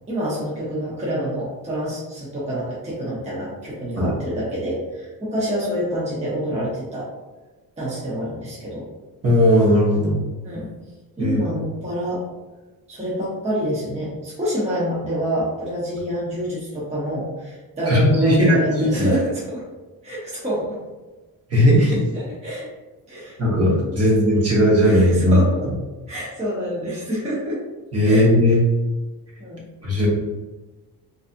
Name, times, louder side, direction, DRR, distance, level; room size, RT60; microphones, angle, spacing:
voice 1, 0.1-7.1 7.8-8.9 10.4-10.7 11.2-12.2 12.9-19.6 20.0-20.8 22.1-22.7 23.1-23.4 24.8-25.7 26.1-27.6 28.0-28.5 29.4-29.7, equal, 20° right, -7 dB, 0.8 m, -27 dB
voice 2, 9.2-10.2 11.2-11.4 17.9-19.1 21.5-22.0 23.4-25.4 27.9-28.6 29.8-30.1, equal, 40° right, -4 dB, 1.1 m, -17 dB
3.9 x 2.7 x 2.5 m, 1.2 s
wide cardioid pair, 150°, 37 cm